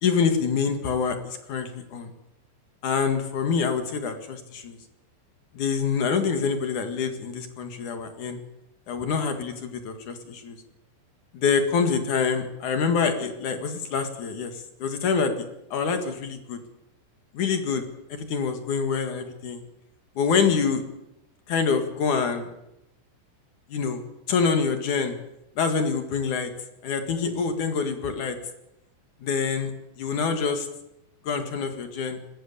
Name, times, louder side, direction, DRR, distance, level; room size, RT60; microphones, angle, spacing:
voice 1, 0.0-2.1 2.8-4.8 5.5-8.4 8.9-10.6 11.3-15.5 15.7-16.6 17.3-17.8 18.1-19.6 20.2-20.8 21.5-22.5 23.7-24.0 24.3-25.2 25.6-26.5 26.8-28.4 29.2-29.7 30.0-30.7 31.2-32.2, left 5 dB, 55° left, 7 dB, 2.4 m, -26 dB
21.0 x 16.0 x 8.6 m, 0.86 s
omnidirectional pair, 5.9 m